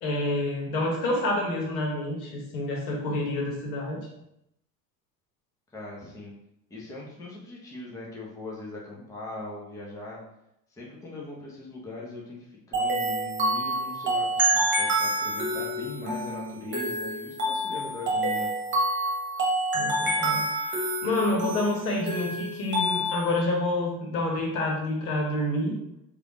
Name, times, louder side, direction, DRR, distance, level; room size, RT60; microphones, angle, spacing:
voice 1, 0.0-4.0 19.7-25.7, left 1 dB, 55° left, -1 dB, 1.3 m, -28 dB
voice 2, 5.7-6.3 6.7-10.2 10.7-18.5, left 2 dB, 5° left, -4 dB, 0.7 m, -40 dB
sound 1, 12.7-23.4, right 1 dB, 25° right, 1.3 m, -27 dB
4.8 x 2.4 x 3.1 m, 0.81 s
figure-of-eight pair, 75°, 49 cm